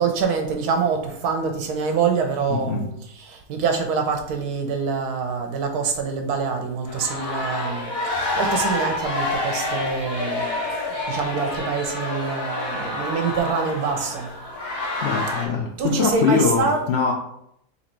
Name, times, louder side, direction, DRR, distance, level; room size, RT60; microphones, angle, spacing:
voice 1, 0.0-14.3 15.8-16.8, right 5 dB, 80° right, 5 dB, 1.2 m, -25 dB
voice 2, 2.5-2.9 15.0-17.1, left 6 dB, 65° left, -1 dB, 0.6 m, -22 dB
sound 1, 6.9-15.5, left 2 dB, 35° left, 1.1 m, -28 dB
4.1 x 2.9 x 4.3 m, 0.75 s
omnidirectional pair, 1.6 m